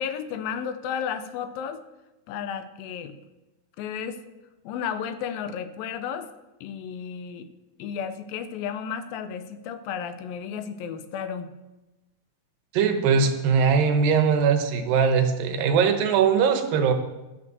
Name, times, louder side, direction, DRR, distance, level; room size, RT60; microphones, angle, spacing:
voice 1, 0.0-1.8 2.3-3.2 3.8-4.2 4.6-6.3 6.6-7.5 7.8-11.5, left 7 dB, 90° left, 10 dB, 2.5 m, -33 dB
voice 2, 12.7-16.9, right 6 dB, 80° right, 6 dB, 2.6 m, -21 dB
12.0 x 5.4 x 6.8 m, 1.0 s
omnidirectional pair, 4.1 m